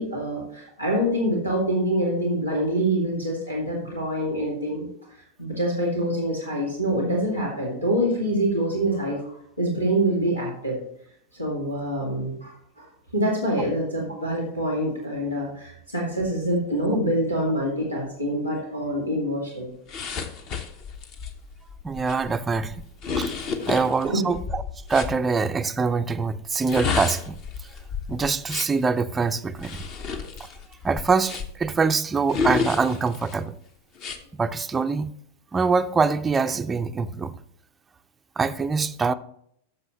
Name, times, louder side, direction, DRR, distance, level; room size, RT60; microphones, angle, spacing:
voice 1, 0.0-4.9 5.4-10.8 11.3-12.9 13.1-19.7 23.6-23.8 24.0-24.2, right 1 dB, 85° left, 2.0 m, -25 dB
sound 1, 19.9-25.2 26.5-28.8 29.6-31.7 32.3-33.3 34.0-34.2, left 5 dB, 40° left, 0.9 m, -31 dB
voice 2, 21.8-22.8 23.2-23.3 23.7-24.6 24.9-27.4 28.1-29.8 30.4-30.5 30.8-33.6 34.4-35.1 35.5-37.3 38.4-39.1, right 4 dB, 15° right, 0.4 m, -24 dB
13.5 x 6.4 x 3.0 m
figure-of-eight pair, 90°, 0 cm